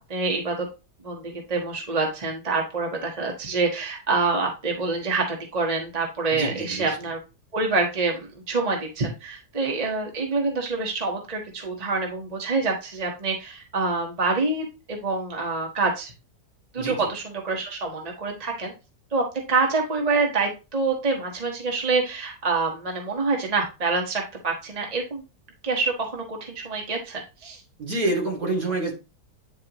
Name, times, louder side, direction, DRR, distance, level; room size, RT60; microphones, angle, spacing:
voice 1, 0.1-0.7 1.0-7.2 7.5-16.1 16.7-18.7 19.1-25.2 25.6-27.6, right 3 dB, 25° right, 0 dB, 1.4 m, -26 dB
voice 2, 6.3-7.0 16.8-17.1 27.8-28.9, right 2 dB, 55° right, 0 dB, 3.0 m, -27 dB
9.8 x 4.8 x 3.0 m, 0.28 s
omnidirectional pair, 1.8 m